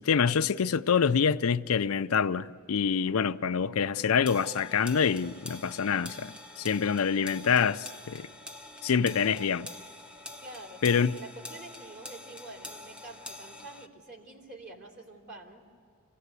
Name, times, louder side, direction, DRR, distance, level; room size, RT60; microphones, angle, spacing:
voice 1, 0.0-8.3 8.8-9.7 10.8-11.2, left 6 dB, 70° left, 0.5 m, -26 dB
sound 1, 4.3-13.9, left 1 dB, 5° right, 0.8 m, -46 dB
voice 2, 9.3-9.6 10.4-15.6, right 2 dB, 50° right, 3.2 m, -47 dB
26.0 x 17.5 x 8.2 m
head